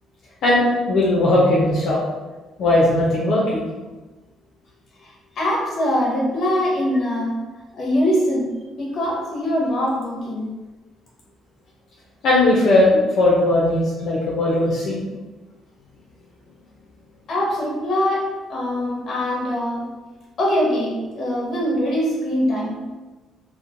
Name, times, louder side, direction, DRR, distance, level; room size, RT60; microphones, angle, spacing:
voice 1, 0.4-2.0 2.6-3.7 12.2-15.0, left 1 dB, 65° left, -6 dB, 0.5 m, -18 dB
voice 2, 5.0-7.3 7.7-8.5 8.8-10.5 17.3-19.9 20.4-22.8, equal, 45° left, -4 dB, 1.0 m, -23 dB
2.9 x 2.1 x 2.5 m, 1.2 s
cardioid pair, 130°, 0 cm